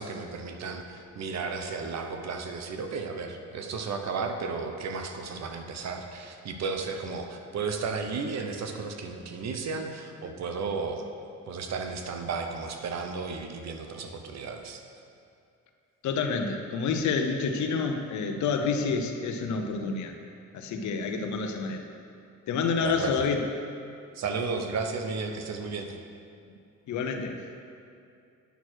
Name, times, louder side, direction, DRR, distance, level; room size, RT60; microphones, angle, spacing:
voice 1, 0.0-11.0 11.5-14.8 22.8-23.2 24.1-26.0, right 4 dB, 60° right, 5 dB, 0.9 m, -34 dB
voice 2, 16.0-20.1 20.5-21.8 22.5-23.4 26.9-27.4, left 5 dB, 70° left, 4 dB, 0.8 m, -28 dB
9.3 x 6.2 x 4.5 m, 2.5 s
cardioid pair, 90°, 30 cm